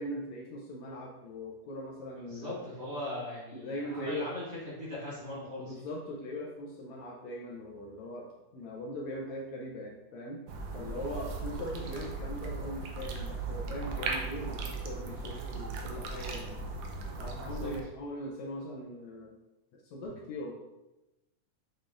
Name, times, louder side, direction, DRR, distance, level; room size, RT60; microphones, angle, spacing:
voice 1, 0.0-2.5 3.5-4.3 5.6-8.3 8.5-10.4 10.7-16.8 17.2-19.4 19.8-20.5, equal, 75° left, -2 dB, 1.8 m, -40 dB
voice 2, 2.1-5.7 17.0-17.7 20.0-20.1, left 1 dB, 35° right, -9 dB, 2.3 m, -40 dB
sound 1, 10.5-17.8, right 3 dB, 75° right, 1.7 m, -37 dB
6.7 x 5.9 x 2.5 m, 1.0 s
omnidirectional pair, 3.6 m